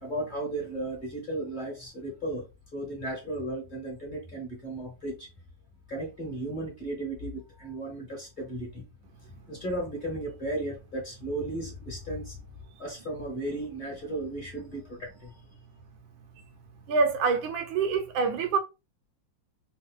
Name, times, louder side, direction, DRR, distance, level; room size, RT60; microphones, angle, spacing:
voice 1, 0.0-2.4 2.7-5.3 5.9-8.8 9.5-12.4 12.8-15.3, right 1 dB, 25° left, 1.4 m, -35 dB
voice 2, 16.9-18.6, right 4 dB, 75° right, 1.4 m, -26 dB
3.6 x 2.7 x 3.4 m
omnidirectional pair, 2.2 m